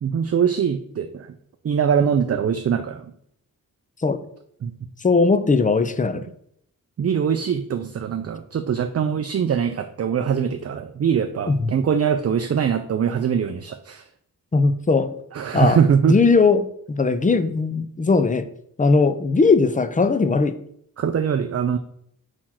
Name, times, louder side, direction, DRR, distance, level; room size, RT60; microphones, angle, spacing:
voice 1, 0.0-1.3 1.6-3.1 4.6-4.7 7.0-14.0 15.3-16.2 21.0-21.8, right 7 dB, 45° right, 8 dB, 0.4 m, -22 dB
voice 2, 5.0-6.2 9.0-9.1 11.5-11.7 14.5-15.1 15.5-15.8 16.1-18.5 18.8-20.6, left 4 dB, 25° left, 11 dB, 0.5 m, -19 dB
4.4 x 4.4 x 5.8 m, 0.69 s
wide cardioid pair, 105°, 35 cm